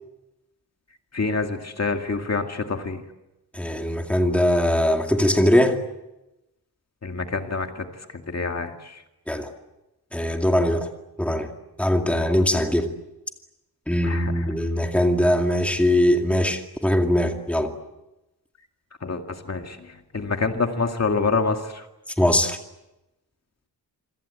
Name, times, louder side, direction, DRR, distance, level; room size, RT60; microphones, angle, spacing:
voice 1, 1.1-3.0 7.0-7.9 8.1-9.0 14.0-14.5 19.0-21.9, left 4 dB, 40° left, 4 dB, 2.1 m, -27 dB
voice 2, 3.5-5.8 9.3-9.5 10.1-10.9 11.2-11.5 11.8-12.9 13.9-17.7 22.2-22.6, left 1 dB, 5° left, 3 dB, 2.3 m, -21 dB
27.5 x 24.5 x 8.4 m, 0.96 s
wide cardioid pair, 180°, 39 cm